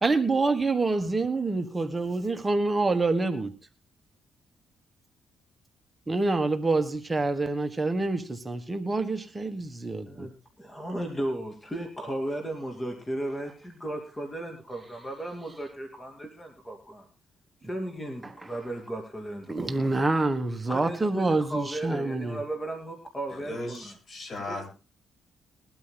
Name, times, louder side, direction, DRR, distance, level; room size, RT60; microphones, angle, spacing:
voice 1, 0.0-3.5 6.1-10.3 18.2-18.3 19.5-22.4, right 3 dB, 20° right, 8 dB, 1.4 m, -27 dB
voice 2, 10.6-17.1 17.6-20.1 20.7-23.9 24.5-24.7, right 1 dB, 15° left, 3 dB, 2.7 m, -35 dB
voice 3, 23.3-24.7, left 2 dB, 45° left, 5 dB, 7.6 m, -37 dB
21.5 x 12.5 x 2.2 m, 0.34 s
cardioid pair, 90°, 0 cm